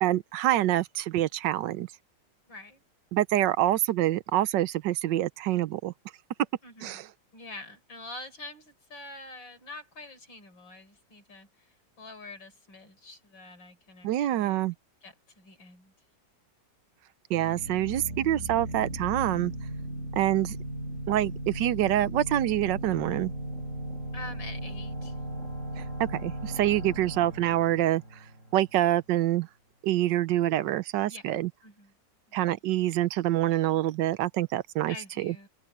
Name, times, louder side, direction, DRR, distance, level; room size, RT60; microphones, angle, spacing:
voice 1, 0.0-1.9 3.1-5.9 6.8-7.1 14.0-14.7 17.3-19.5 20.2-20.6 21.1-23.3 25.8-28.0 28.5-29.5 29.8-31.5 32.3-35.3, right 13 dB, 75° right, 1.3 m, -26 dB
voice 2, 2.5-2.8 6.6-14.6 15.0-15.9 24.1-25.2 31.1-31.3 31.6-31.9 32.3-32.4 34.9-35.5, left 2 dB, 90° left, 5.2 m, -46 dB
sound 1, 17.3-28.9, right 1 dB, 40° right, 7.5 m, -37 dB
open air
omnidirectional pair, 2.0 m